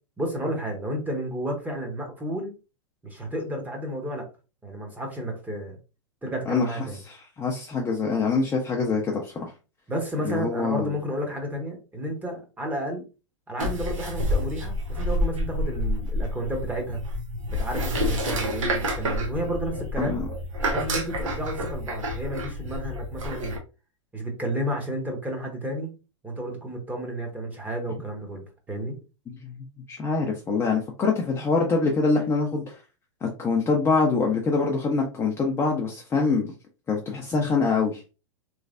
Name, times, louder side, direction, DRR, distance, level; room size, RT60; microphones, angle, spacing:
voice 1, 0.2-2.5 3.0-4.3 4.6-5.8 6.2-7.0 9.9-13.0 13.5-17.0 17.5-20.2 20.6-23.6 24.1-25.9 26.2-28.9, right 1 dB, 10° right, 1.0 m, -31 dB
voice 2, 7.1-9.5 10.2-11.0 20.0-20.2 29.3-29.5 29.9-32.8 33.2-36.5 36.9-38.0, left 4 dB, 15° left, 0.6 m, -24 dB
sound 1, 13.6-23.6, equal, 85° right, 1.0 m, -29 dB
3.2 x 3.1 x 2.5 m
hypercardioid pair, 125°, 16 cm